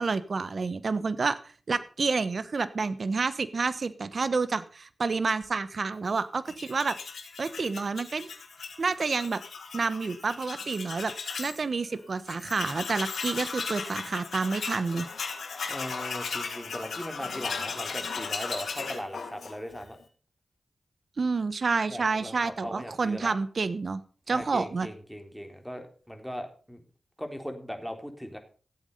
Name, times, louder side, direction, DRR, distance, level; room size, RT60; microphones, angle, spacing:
voice 1, 0.0-1.4 1.7-7.0 7.4-8.3 8.8-9.4 9.7-11.1 11.4-15.1 21.2-24.0 24.3-24.9, right 4 dB, 65° right, 15 dB, 1.1 m, -29 dB
Tools, 6.5-11.6 11.9-12.0 12.3-19.9, left 5 dB, 85° left, 2.7 m, -36 dB
voice 2, 15.7-20.0 21.9-23.4 24.3-26.8 27.2-28.4, equal, ahead, 5 dB, 3.5 m, -39 dB
15.0 x 8.5 x 5.6 m, 0.40 s
cardioid pair, 50°, 0 cm